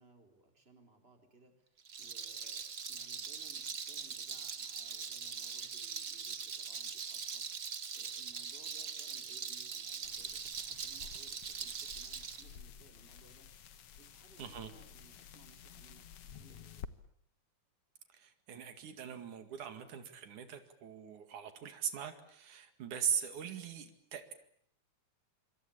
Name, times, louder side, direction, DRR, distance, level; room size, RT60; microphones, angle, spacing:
voice 1, 0.0-7.5 7.9-13.5 14.0-16.9, right 3 dB, 20° right, 5 dB, 4.2 m, -63 dB
Rattle, 1.8-12.4, right 6 dB, 40° right, 1.2 m, -42 dB
sound 1, 10.0-16.9, left 7 dB, 60° left, 2.1 m, -52 dB
voice 2, 14.4-14.7 18.1-24.3, right 8 dB, 85° right, 9 dB, 3.6 m, -40 dB
26.5 x 26.0 x 8.7 m, 0.65 s
omnidirectional pair, 3.4 m